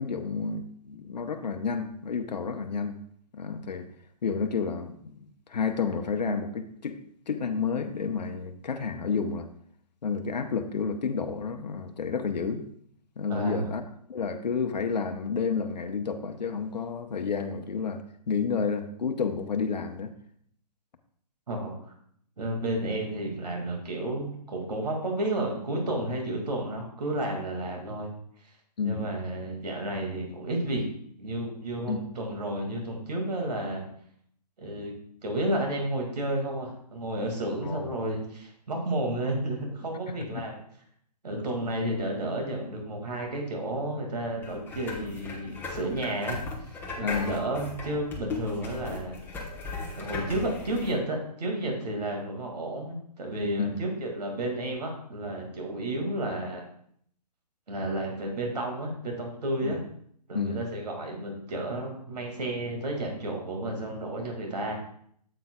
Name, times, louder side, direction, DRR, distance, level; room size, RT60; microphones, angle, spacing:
voice 1, 0.0-3.0 3.3-3.9 4.2-7.0 7.3-9.5 10.0-12.7 13.2-13.8 14.1-20.1 28.8-29.1 31.9-32.0 37.6-37.9 40.1-40.5 47.0-47.4 53.6-53.8 59.6-59.8 60.3-60.6, left 5 dB, 80° left, 6 dB, 0.8 m, -30 dB
voice 2, 13.3-13.7 21.5-21.7 22.4-28.1 28.8-30.8 31.2-33.8 34.6-34.9 35.2-40.6 41.2-46.4 46.7-49.2 49.9-56.7 57.7-59.8 60.3-64.8, right 1 dB, 75° right, 1 dB, 2.1 m, -31 dB
sound 1, 44.4-50.9, left 3 dB, 10° left, 1.1 m, -37 dB
9.2 x 7.7 x 2.3 m, 0.64 s
hypercardioid pair, 140°, 21 cm